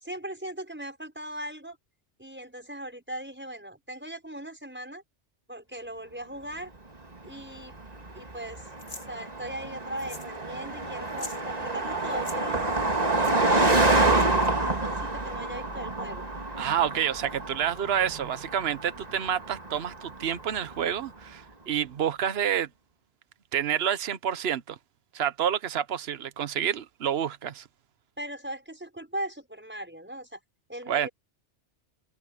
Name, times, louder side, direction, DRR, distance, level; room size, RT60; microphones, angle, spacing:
voice 1, 0.0-1.8 2.2-5.0 5.5-6.7 7.2-7.7 8.1-8.6 9.1-12.7 13.1-16.3 28.2-30.4 30.7-31.1, right 1 dB, 10° right, 5.8 m, -39 dB
Car passing by, 7.2-20.9, right 2 dB, 35° right, 2.1 m, -28 dB
sound 1, 8.8-9.1 10.0-10.4 10.6-10.7 11.0-11.4 12.1-12.4 13.2-13.3 14.1-14.5, left 2 dB, 55° left, 3.0 m, -43 dB
voice 2, 16.6-22.7 23.5-24.8 25.1-27.7 30.9-31.1, right 9 dB, 65° right, 1.1 m, -28 dB
omnidirectional pair, 1.2 m